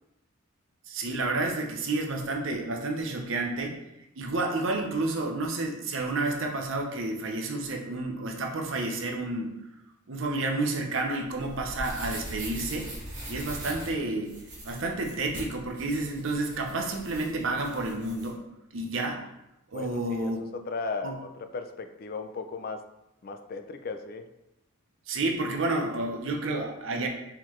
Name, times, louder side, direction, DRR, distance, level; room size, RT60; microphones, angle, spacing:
voice 1, 0.9-3.8 4.2-9.6 10.1-12.9 13.3-14.4 14.6-18.4 18.7-19.2 19.7-20.4 21.0-21.2 25.1-27.1, right 2 dB, 65° right, 2 dB, 0.7 m, -30 dB
sound 1, 11.2-18.3, right 1 dB, 35° right, 1.6 m, -41 dB
voice 2, 19.7-22.9 23.2-24.3, left 4 dB, 45° left, 7 dB, 0.4 m, -36 dB
4.4 x 3.8 x 3.1 m, 0.90 s
head